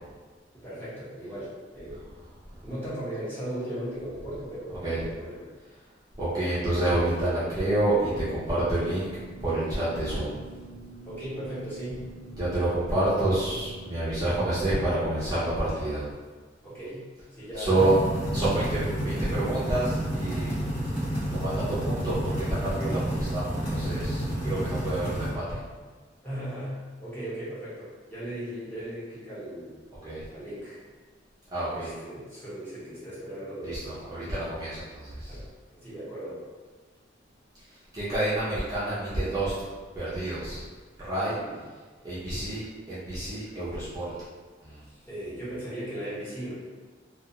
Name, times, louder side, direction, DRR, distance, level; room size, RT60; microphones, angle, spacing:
voice 1, 0.6-2.0 2.6-5.5 11.0-12.0 16.6-17.0 17.3-17.8 26.2-29.8 30.3-30.8 31.7-33.8 35.3-35.4 35.8-36.4 41.2-41.5 45.1-46.5, right 1 dB, 10° left, -11 dB, 0.9 m, -37 dB
voice 2, 6.2-9.1 9.4-10.4 12.4-16.0 17.6-20.6 21.3-25.6 30.0-30.2 31.5-31.9 33.6-35.4 37.9-39.5 39.9-40.6 41.0-41.4 42.0-44.1 44.6-44.8, right 1 dB, 20° right, -11 dB, 0.6 m, -28 dB
sound 1, 7.7-14.0, right 2 dB, 80° right, 0.4 m, -45 dB
sound 2, 17.7-25.3, equal, 50° left, 1.0 m, -30 dB
2.4 x 2.3 x 2.9 m, 1.4 s
head